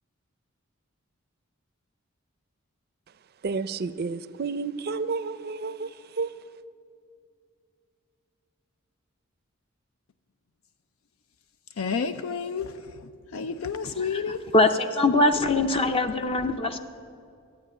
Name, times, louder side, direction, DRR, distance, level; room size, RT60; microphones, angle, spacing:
voice 1, 3.4-5.9 6.2-6.3, right 4 dB, 50° right, 0.5 m, -30 dB
voice 2, 11.8-12.7 13.3-14.4, left 5 dB, 80° left, 0.5 m, -30 dB
voice 3, 14.0-16.8, left 2 dB, 25° left, 0.5 m, -23 dB
13.0 x 8.8 x 9.8 m
head